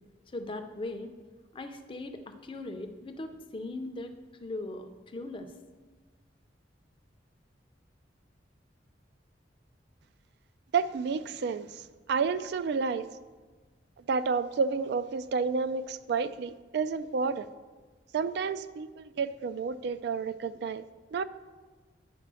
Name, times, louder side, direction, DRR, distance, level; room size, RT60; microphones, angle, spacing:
voice 1, 0.3-1.1 1.5-5.5, left 2 dB, 30° left, 0.5 m, -39 dB
voice 2, 10.7-13.1 14.1-17.5 18.1-21.2, right 5 dB, 65° right, 0.3 m, -30 dB
10.0 x 4.1 x 6.1 m
head